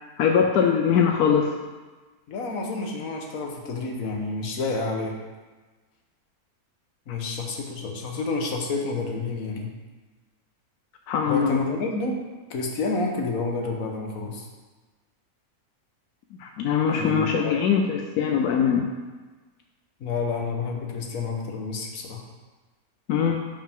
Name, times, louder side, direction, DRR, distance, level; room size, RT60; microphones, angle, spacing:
voice 1, 0.2-1.5 7.1-7.2 11.1-11.6 16.4-18.8 23.1-23.4, left 7 dB, 85° left, 3 dB, 1.1 m, -22 dB
voice 2, 2.3-5.2 7.1-9.7 11.2-12.2 12.5-14.5 16.9-17.3 20.0-22.2, left 3 dB, 70° left, 1 dB, 1.5 m, -29 dB
10.0 x 5.3 x 3.6 m, 1.3 s
omnidirectional pair, 1.6 m